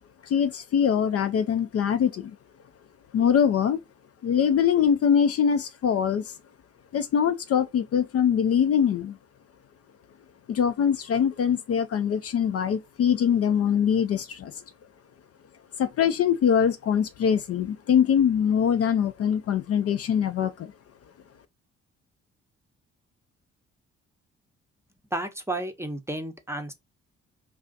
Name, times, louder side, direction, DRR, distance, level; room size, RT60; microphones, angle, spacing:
voice 1, 0.2-2.4 3.1-3.8 4.2-6.4 6.9-9.2 10.5-14.6 15.8-20.7, left 8 dB, 50° left, 0.4 m, -23 dB
voice 2, 25.1-26.7, right 1 dB, 10° right, 0.7 m, -32 dB
2.4 x 2.3 x 3.8 m
hypercardioid pair, 45°, 32 cm